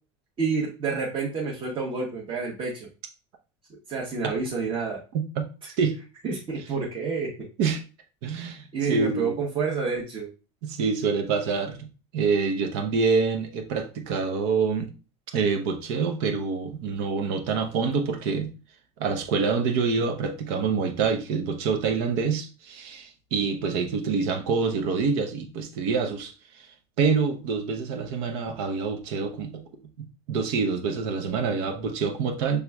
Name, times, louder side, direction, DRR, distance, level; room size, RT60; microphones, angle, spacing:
voice 1, 0.4-2.9 3.9-5.0 6.2-7.5 8.7-10.3, right 5 dB, 35° right, 1.2 m, -29 dB
voice 2, 5.1-5.4 5.8-6.0 7.6-7.8 8.2-9.4 10.6-11.9 12.1-14.9 15.3-18.5 19.0-26.7 27.0-29.6 30.0-32.6, right 5 dB, 70° right, 0.9 m, -26 dB
5.8 x 3.4 x 2.3 m
supercardioid pair, 130°, 15 cm